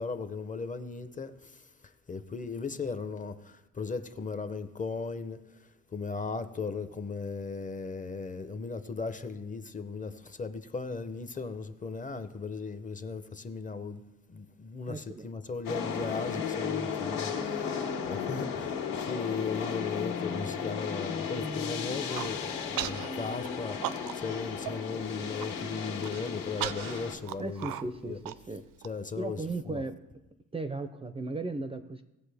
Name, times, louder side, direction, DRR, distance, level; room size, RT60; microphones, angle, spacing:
voice 1, 0.0-27.7 28.0-28.2 28.8-29.8, left 4 dB, 25° left, 0.6 m, -37 dB
voice 2, 14.9-15.3 27.4-28.6 29.2-30.0 30.5-32.0, right 2 dB, 15° right, 0.5 m, -36 dB
sound 1, 15.6-27.1, left 6 dB, 70° left, 1.7 m, -34 dB
Human voice, 21.9-22.3 22.8-23.1 23.4-24.3 24.7-24.8 25.1-25.5 26.0-28.9, right 12 dB, 70° right, 0.6 m, -37 dB
18.0 x 7.5 x 3.4 m
cardioid pair, 120°, 35 cm